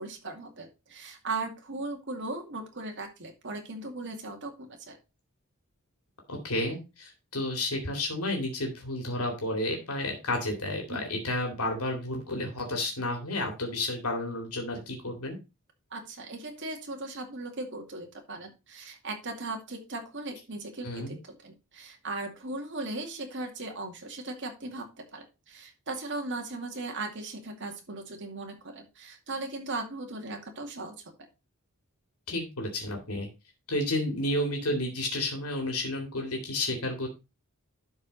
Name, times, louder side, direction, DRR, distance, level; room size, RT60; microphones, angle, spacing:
voice 1, 0.0-5.0 10.9-11.1 15.9-24.9 25.1-31.1, right 2 dB, 55° right, 3 dB, 2.3 m, -38 dB
voice 2, 6.3-15.4 20.8-21.2 32.3-33.3 33.7-37.1, left 1 dB, 80° left, 2 dB, 2.5 m, -31 dB
11.5 x 4.7 x 4.0 m, 0.27 s
head